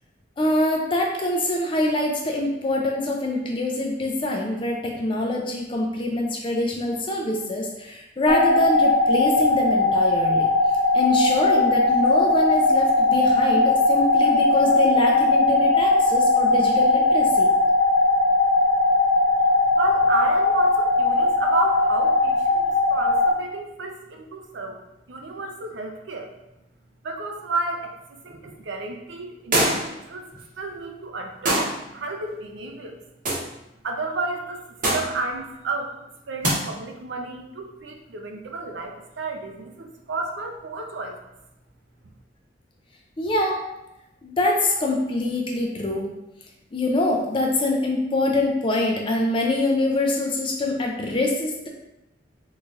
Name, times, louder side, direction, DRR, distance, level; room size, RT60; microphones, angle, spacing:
voice 1, 0.4-10.5 10.9-17.5 43.2-43.6 44.2-46.1 46.7-51.7, left 1 dB, 30° left, 1 dB, 0.4 m, -24 dB
sound 1, 8.3-23.3, left 2 dB, 90° left, 0.5 m, -19 dB
voice 2, 19.8-24.8 25.1-26.3 27.0-27.9 28.2-30.3 30.6-33.0 33.8-34.6 34.9-35.9 36.3-41.2, right 3 dB, 85° right, 3 dB, 0.5 m, -31 dB
sound 2, 29.5-30.0 31.5-31.8 33.2-33.5 34.8-35.2 36.4-36.6, right 1 dB, 45° right, 0.9 m, -22 dB
3.8 x 3.1 x 2.4 m, 0.91 s
head